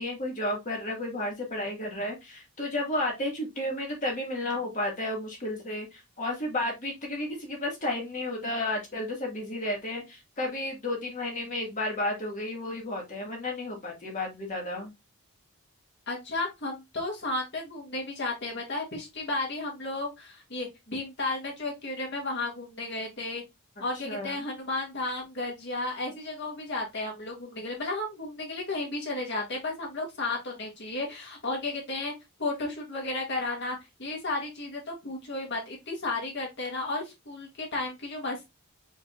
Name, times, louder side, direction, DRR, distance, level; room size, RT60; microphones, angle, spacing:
voice 1, 0.0-14.9 24.0-24.3, left 1 dB, 35° left, 0 dB, 1.7 m, -32 dB
voice 2, 16.1-23.4 23.8-32.1 32.4-38.5, left 2 dB, 55° left, 0 dB, 1.9 m, -33 dB
4.7 x 4.0 x 2.4 m, 0.21 s
head